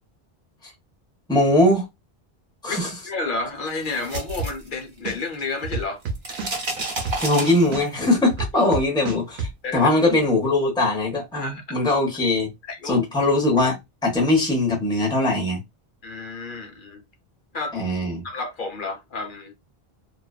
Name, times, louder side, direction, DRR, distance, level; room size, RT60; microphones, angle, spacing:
voice 1, 1.3-1.9 2.6-2.9 7.2-12.5 12.8-13.8 14.0-15.6 17.7-18.2, left 2 dB, 5° left, 0.7 m, -21 dB
voice 2, 2.7-6.0 8.5-8.7 9.6-9.9 11.3-11.8 12.7-13.0 16.0-17.0 17.5-17.8 18.2-19.5, left 3 dB, 60° left, 0.8 m, -31 dB
sound 1, 3.7-5.4 5.6-8.1, right 2 dB, 65° right, 1.0 m, -31 dB
sound 2, 4.4-4.7 5.0-7.4 7.7-9.5, right 4 dB, 90° right, 0.9 m, -29 dB
2.5 x 2.2 x 2.2 m
omnidirectional pair, 1.0 m